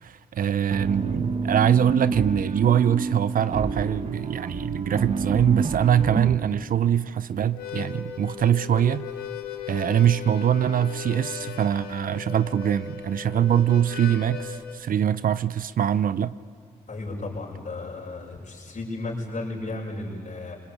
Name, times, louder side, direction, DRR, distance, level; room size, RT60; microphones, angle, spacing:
voice 1, 0.0-9.1 9.7-16.3, right 9 dB, 65° right, 0.7 m, -23 dB
sound 1, 0.7-6.3, right 4 dB, 45° right, 1.6 m, -28 dB
Harmonica, 7.4-14.8, left 10 dB, 90° left, 2.1 m, -37 dB
voice 2, 16.9-20.6, left 2 dB, 55° left, 7.0 m, -34 dB
25.5 x 21.5 x 8.7 m
supercardioid pair, 50°, 16 cm